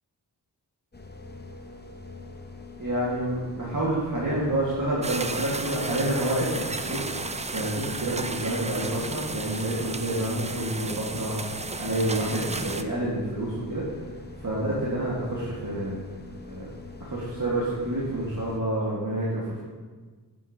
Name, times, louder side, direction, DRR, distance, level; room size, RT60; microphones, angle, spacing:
sound 1, 0.9-18.6, left 3 dB, 25° left, 0.7 m, -44 dB
voice 1, 2.8-13.8 14.4-16.0 16.4-16.7 17.0-19.6, right 1 dB, 45° right, -7 dB, 1.6 m, -28 dB
sound 2, 5.0-12.8, right 3 dB, 20° right, 0.3 m, -34 dB
8.3 x 7.8 x 2.6 m, 1.4 s
wide cardioid pair, 50°, 43 cm